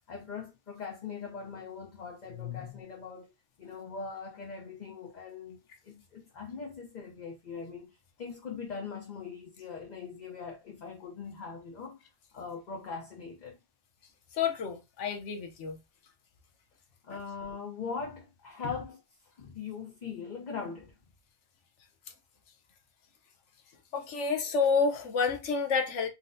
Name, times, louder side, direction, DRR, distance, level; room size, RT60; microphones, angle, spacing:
voice 1, 0.1-3.3 3.6-12.0 12.3-13.6 17.0-19.0 19.4-21.0, left 5 dB, 45° left, 0.8 m, -41 dB
voice 2, 14.3-15.8 23.9-26.1, left 5 dB, 85° left, 1.1 m, -29 dB
4.1 x 2.1 x 2.6 m
omnidirectional pair, 1.2 m